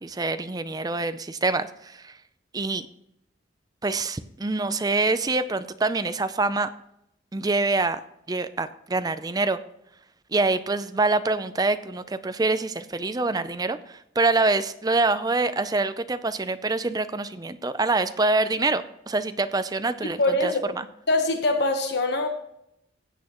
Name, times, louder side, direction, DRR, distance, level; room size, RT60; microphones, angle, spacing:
voice 1, 0.0-2.1 2.5-2.9 3.8-6.7 7.3-8.0 8.3-9.6 10.3-20.9, right 3 dB, 20° right, 11 dB, 0.5 m, -25 dB
voice 2, 20.2-20.6 21.1-22.3, left 2 dB, 60° left, 5 dB, 1.2 m, -23 dB
15.5 x 8.5 x 3.0 m, 0.78 s
head